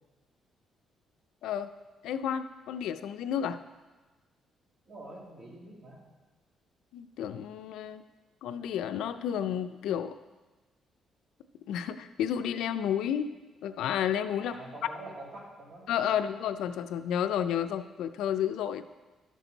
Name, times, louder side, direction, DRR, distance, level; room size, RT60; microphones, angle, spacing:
voice 1, 2.0-3.6 6.9-8.0 8.4-10.1 11.7-13.3 13.6-14.5 15.9-18.8, left 9 dB, 85° left, 10 dB, 0.4 m, -31 dB
voice 2, 4.8-6.0 14.4-16.2, right 1 dB, 40° right, -4 dB, 2.9 m, -46 dB
12.0 x 6.2 x 4.0 m, 1.2 s
cardioid pair, 120°, 0 cm